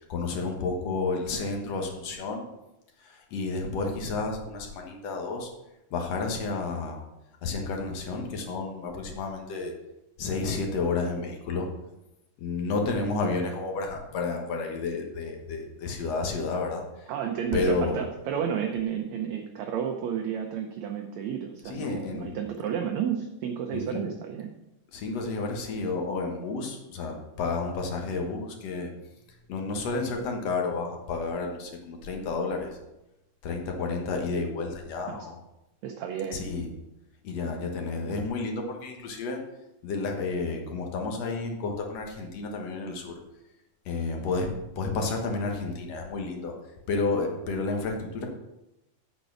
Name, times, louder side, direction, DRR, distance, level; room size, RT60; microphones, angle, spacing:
voice 1, 0.1-2.5 3.0-5.5 5.9-7.0 7.4-9.7 10.2-11.7 12.4-17.1 17.5-18.0 21.7-22.4 23.7-24.0 24.9-28.9 29.5-32.8 33.4-35.4 36.3-36.7 37.2-39.4 39.8-43.1 43.9-44.5 44.8-46.5 46.9-48.3, left 3 dB, 60° left, 2 dB, 2.2 m, -31 dB
voice 2, 17.1-24.5 35.1-35.3 35.8-36.4, right 8 dB, 75° right, 3 dB, 1.7 m, -31 dB
8.2 x 6.7 x 6.1 m, 0.92 s
omnidirectional pair, 3.9 m